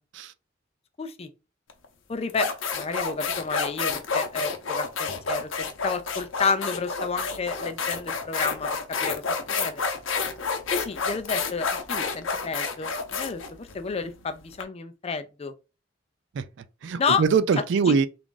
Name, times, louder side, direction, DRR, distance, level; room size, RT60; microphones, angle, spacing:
voice 1, 1.0-1.3 2.1-8.7 9.0-9.2 9.5-9.8 10.7-15.5 17.0-17.2 17.9-18.0, left 4 dB, 30° left, 0.4 m, -30 dB
sound 1, 1.7-1.8 2.3-14.6, left 5 dB, 90° left, 0.7 m, -29 dB
voice 2, 16.3-18.1, right 5 dB, 65° right, 0.4 m, -23 dB
3.5 x 2.5 x 3.8 m
head